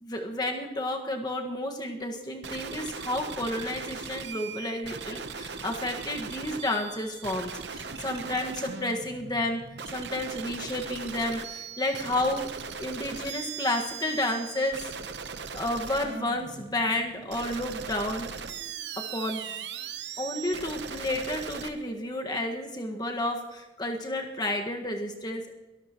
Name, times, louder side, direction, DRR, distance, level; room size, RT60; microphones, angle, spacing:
voice 1, 0.0-9.6 9.9-12.4 12.8-14.9 15.5-18.3 19.1-19.4 20.2-25.5, left 1 dB, 25° left, 2 dB, 1.6 m, -31 dB
sound 1, 2.4-21.7, right 6 dB, 70° right, 0.9 m, -39 dB
22.5 x 13.0 x 3.0 m, 1.0 s
head